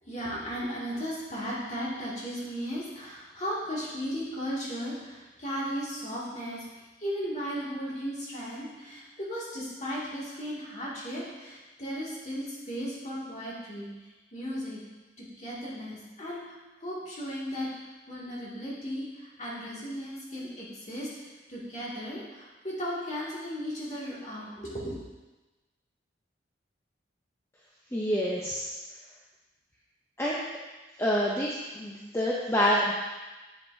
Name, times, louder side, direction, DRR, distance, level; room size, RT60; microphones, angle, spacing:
voice 1, 0.0-14.8 15.2-25.0, equal, 35° left, -6 dB, 2.1 m, -36 dB
voice 2, 27.9-28.7 30.2-30.4 31.0-32.9, equal, 15° left, -5 dB, 0.6 m, -27 dB
8.0 x 7.6 x 2.7 m, 1.2 s
head